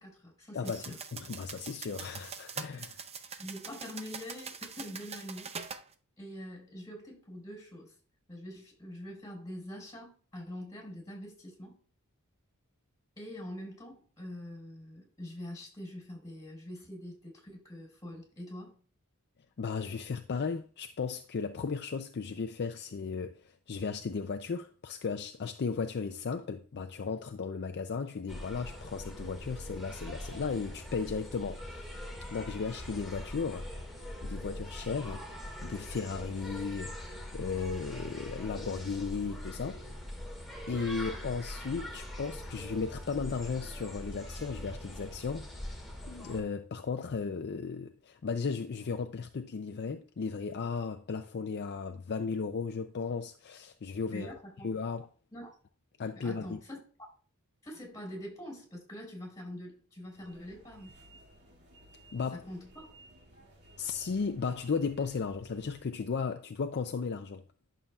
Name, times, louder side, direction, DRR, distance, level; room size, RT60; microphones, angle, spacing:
voice 1, 0.0-1.0 3.4-5.8 6.2-7.9 8.3-11.8 13.2-18.8 54.1-55.0 55.3-55.5 56.1-56.8 57.6-61.0 62.3-62.9, left 1 dB, 15° left, 4.6 m, -44 dB
voice 2, 0.5-3.0 19.6-31.9 32.3-33.7 34.2-35.3 35.6-39.8 40.7-45.7 46.1-54.3 54.6-55.1 56.0-56.6 62.1-62.4 63.8-67.4, left 5 dB, 50° left, 0.5 m, -35 dB
sound 1, 0.6-5.8, right 6 dB, 30° right, 0.6 m, -43 dB
sound 2, 28.3-46.4, left 1 dB, ahead, 1.9 m, -42 dB
sound 3, 60.0-66.0, right 1 dB, 50° right, 2.4 m, -57 dB
11.0 x 6.9 x 2.4 m
head